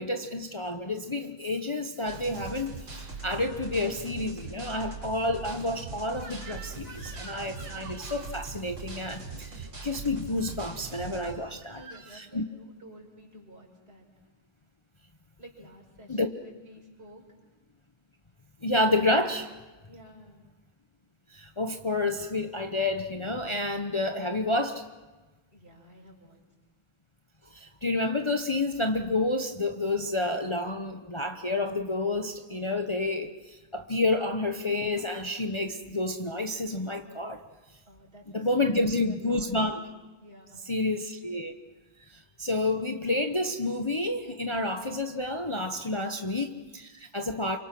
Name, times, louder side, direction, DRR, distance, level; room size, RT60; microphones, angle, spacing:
voice 1, 0.0-11.8 12.1-12.4 16.1-16.3 18.6-19.5 21.3-24.8 27.5-37.4 38.3-39.8 40.7-41.5 42.1-47.6, left 2 dB, 45° left, 5 dB, 0.3 m, -29 dB
sound 1, 2.1-11.3, right 4 dB, 90° right, 5.1 m, -41 dB
Crying sobbing / Screech, 6.2-8.4 10.3-10.6 11.2-12.2, right 3 dB, 70° right, 4.1 m, -47 dB
voice 2, 7.6-7.9 11.5-14.1 15.4-17.2 19.9-20.5 25.5-26.4 37.9-39.5 40.2-40.7, equal, 25° right, -1 dB, 5.9 m, -52 dB
28.5 x 25.0 x 6.1 m, 1.2 s
omnidirectional pair, 2.2 m